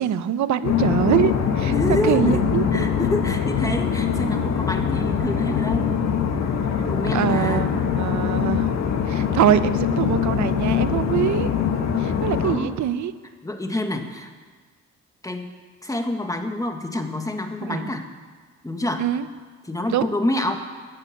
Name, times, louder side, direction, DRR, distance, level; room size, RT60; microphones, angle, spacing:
voice 1, 0.0-1.7 2.0-2.8 7.1-7.7 8.0-8.7 9.1-11.5 12.0-13.1 17.6-17.9 19.0-19.3 19.9-20.1, right 10 dB, 70° right, 13 dB, 0.9 m, -23 dB
sound 1, 0.6-12.6, left 7 dB, 60° left, 1.9 m, -23 dB
voice 2, 1.7-2.4 2.7-5.9 6.9-7.7 12.4-12.7 13.4-14.3 15.2-15.5 15.8-18.1 18.6-19.0 19.6-20.6, left 1 dB, 10° left, 5 dB, 1.6 m, -27 dB
14.0 x 9.8 x 8.6 m, 1.5 s
cardioid pair, 90°, 30 cm